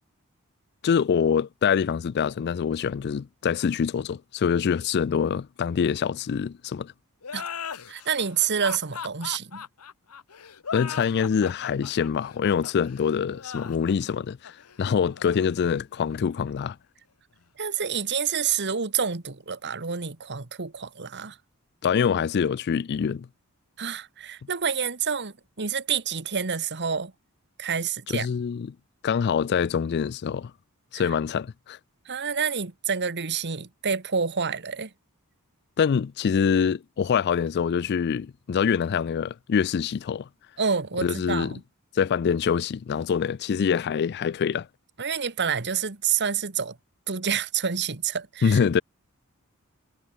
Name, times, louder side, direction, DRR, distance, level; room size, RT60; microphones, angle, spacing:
voice 1, 0.8-6.9 10.7-16.8 21.8-23.3 28.1-28.7 29.0-30.5 30.9-31.8 35.8-40.3 41.0-41.6 41.9-44.7 48.4-48.8, left 7 dB, 50° left, 0.3 m, -25 dB
sound 1, 7.2-16.5, left 6 dB, 85° left, 1.1 m, -39 dB
voice 2, 7.9-9.6 17.6-21.4 23.8-27.1 27.6-28.3 30.9-31.1 32.0-34.9 40.6-41.6 45.0-46.8 47.1-48.6, right 6 dB, 50° right, 1.6 m, -28 dB
head